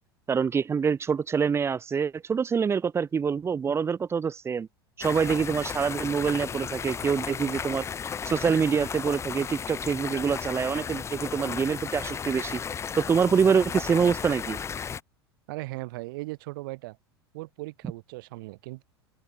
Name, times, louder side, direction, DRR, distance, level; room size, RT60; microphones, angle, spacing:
voice 1, 0.3-4.7 5.0-7.8 8.3-12.6 13.0-14.6, right 6 dB, 20° right, 0.9 m, -25 dB
sound 1, 5.0-15.0, left 7 dB, 20° left, 0.9 m, -34 dB
voice 2, 15.5-17.0 17.3-18.8, right 22 dB, 55° right, 1.0 m, -38 dB
open air
figure-of-eight pair, 80°, 13 cm